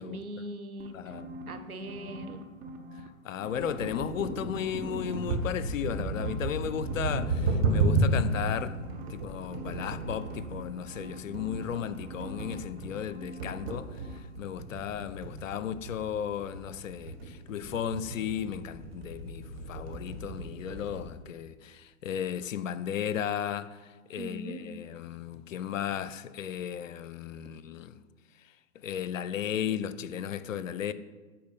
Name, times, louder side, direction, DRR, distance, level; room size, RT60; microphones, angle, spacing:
voice 1, 0.0-0.9 1.5-2.4 24.2-24.8, right 1 dB, 90° right, 0.9 m, -40 dB
sound 1, 0.8-3.1 3.4-5.4 5.8-7.3 8.1-13.8 14.0-14.2, right 1 dB, 20° right, 0.6 m, -44 dB
voice 2, 0.9-1.3 3.2-8.8 9.1-28.0 28.7-30.9, left 9 dB, 65° left, 0.6 m, -35 dB
sound 2, 3.5-21.1, right 2 dB, 45° right, 1.5 m, -33 dB
8.4 x 4.4 x 5.6 m
figure-of-eight pair, 110°, 42 cm